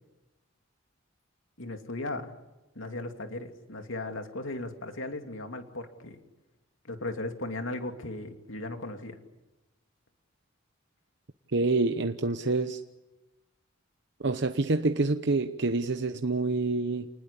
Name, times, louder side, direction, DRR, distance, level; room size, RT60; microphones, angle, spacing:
voice 1, 1.6-2.3 2.7-6.2 6.8-9.2, left 2 dB, 85° left, 5 dB, 2.8 m, -37 dB
voice 2, 11.5-12.8 14.2-17.1, right 3 dB, 60° right, 8 dB, 1.0 m, -27 dB
28.5 x 20.0 x 8.5 m, 1.1 s
head